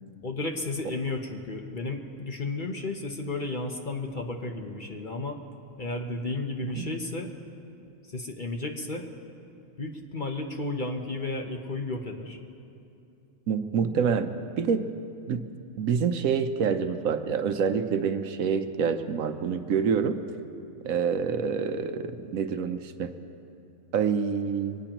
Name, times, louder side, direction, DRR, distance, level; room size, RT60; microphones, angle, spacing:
voice 1, 0.2-5.4 5.8-7.4 8.1-9.1 9.4-9.5 9.8-12.4, left 2 dB, 40° left, 3 dB, 0.9 m, -33 dB
voice 2, 13.5-14.9 15.3-15.4 15.8-20.2 20.8-23.1 23.9-24.8, right 6 dB, 75° right, 8 dB, 1.1 m, -27 dB
23.5 x 19.0 x 3.0 m, 2.7 s
omnidirectional pair, 1.5 m